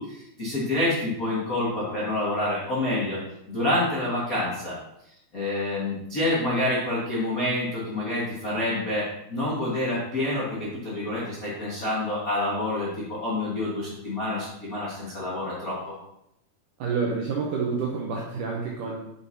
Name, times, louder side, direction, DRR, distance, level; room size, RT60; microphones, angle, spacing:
voice 1, 0.0-3.2 3.5-4.7 5.3-15.9, left 1 dB, 85° left, -8 dB, 0.7 m, -27 dB
voice 2, 16.8-19.0, right 5 dB, 80° right, -1 dB, 1.8 m, -29 dB
7.9 x 6.4 x 2.8 m, 0.81 s
omnidirectional pair, 4.6 m